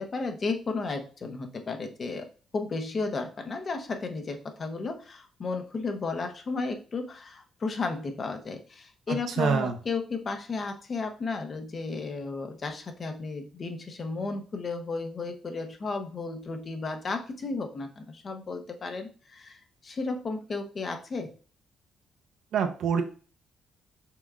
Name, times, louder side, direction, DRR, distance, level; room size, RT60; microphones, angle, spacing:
voice 1, 0.0-2.3 2.5-21.3, left 3 dB, 40° left, 6 dB, 0.9 m, -33 dB
voice 2, 9.4-9.7 22.5-23.0, right 6 dB, 75° right, 5 dB, 0.8 m, -25 dB
5.9 x 3.5 x 2.4 m, 0.38 s
cardioid pair, 90°, 0 cm